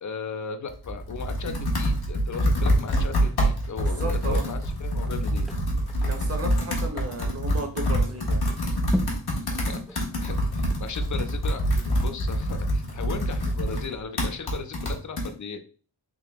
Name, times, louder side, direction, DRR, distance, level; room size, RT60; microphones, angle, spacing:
voice 1, 0.0-5.5 9.7-10.4 10.8-15.6, left 5 dB, 45° left, 9 dB, 0.6 m, -36 dB
Computer keyboard, 0.7-15.3, equal, 65° left, 1.3 m, -26 dB
voice 2, 3.8-4.4 6.0-8.5, right 2 dB, 35° right, 4 dB, 0.9 m, -34 dB
sound 1, 4.6-13.1 13.5-13.6, left 1 dB, ahead, 0.3 m, -39 dB
3.7 x 2.9 x 3.4 m, 0.40 s
wide cardioid pair, 95°, 40 cm